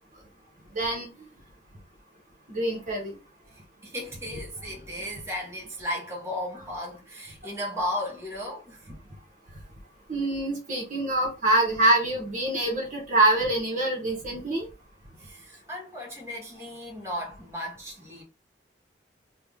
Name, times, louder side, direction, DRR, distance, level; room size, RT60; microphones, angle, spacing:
voice 1, 0.7-1.1 2.5-3.1 10.1-14.7, right 2 dB, 45° right, 1.1 m, -25 dB
voice 2, 3.8-8.9 15.2-18.2, left 1 dB, 15° right, 1.1 m, -35 dB
3.3 x 2.3 x 3.5 m
head